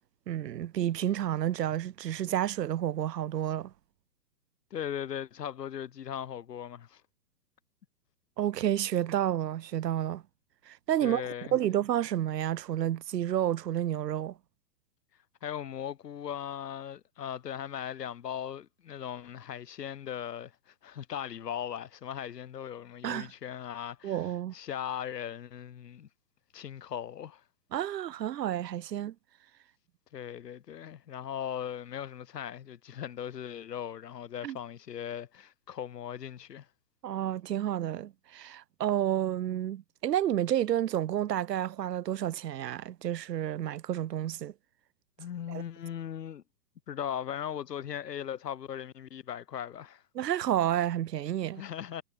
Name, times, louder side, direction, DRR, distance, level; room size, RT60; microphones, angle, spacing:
voice 1, 0.3-3.7 8.4-10.2 10.7-11.2 11.5-14.3 23.0-23.3 24.0-24.5 27.7-29.1 34.4-34.6 37.0-44.5 45.5-45.6 50.1-51.6, right 11 dB, 85° right, 1.0 m, -30 dB
voice 2, 4.7-7.0 11.0-11.6 15.4-24.2 24.5-26.1 26.5-27.4 30.1-36.7 45.2-46.4 46.9-50.0 51.6-52.0, left 9 dB, 75° left, 5.1 m, -38 dB
hypercardioid pair, 145°, 48 cm